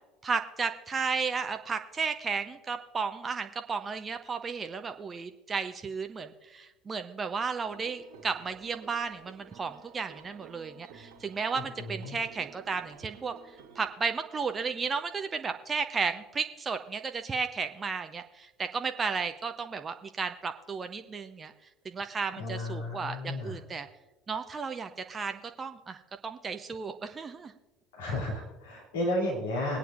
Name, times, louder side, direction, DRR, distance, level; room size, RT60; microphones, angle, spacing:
voice 1, 0.2-13.3 13.8-21.5 21.8-23.9 24.3-27.5, right 5 dB, 25° right, 7 dB, 0.7 m, -34 dB
sound 1, 7.6-13.9, right 6 dB, 60° right, 1.7 m, -52 dB
voice 2, 11.8-12.2 22.3-23.6 27.9-29.8, left 1 dB, 70° left, -3 dB, 2.9 m, -33 dB
21.5 x 9.2 x 2.5 m, 1.1 s
figure-of-eight pair, 65°, 0 cm